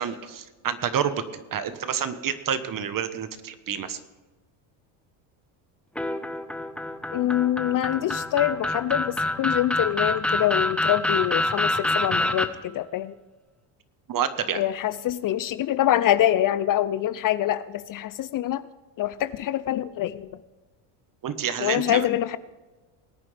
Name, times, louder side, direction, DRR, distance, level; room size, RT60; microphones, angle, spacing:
voice 1, 0.0-4.0 14.1-14.6 21.2-22.1, right 8 dB, 40° right, 11 dB, 1.3 m, -28 dB
sound 1, 6.0-12.5, left 1 dB, ahead, 1.0 m, -26 dB
voice 2, 7.1-13.1 14.6-18.6 19.0-20.3 21.6-22.4, left 12 dB, 45° left, 15 dB, 0.5 m, -25 dB
20.5 x 9.1 x 3.4 m, 1.2 s
supercardioid pair, 100°, 49 cm